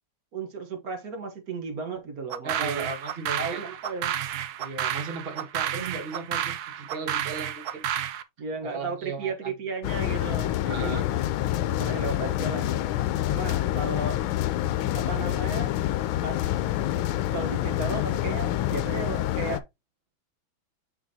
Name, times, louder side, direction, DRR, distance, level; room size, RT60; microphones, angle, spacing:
voice 1, 0.3-2.9 3.4-4.1 8.4-11.3 11.7-12.8 13.3-14.2 14.9-15.8 16.2-16.7 17.3-19.6, right 4 dB, 50° right, 1.5 m, -34 dB
sound 1, 2.3-8.2, right 10 dB, 70° right, 1.0 m, -31 dB
voice 2, 2.4-3.7 4.6-7.8 8.6-9.5 10.7-11.0, right 4 dB, 30° right, 1.4 m, -36 dB
sound 2, 9.8-19.6, left 13 dB, 85° left, 1.4 m, -27 dB
7.2 x 5.1 x 2.7 m
omnidirectional pair, 2.2 m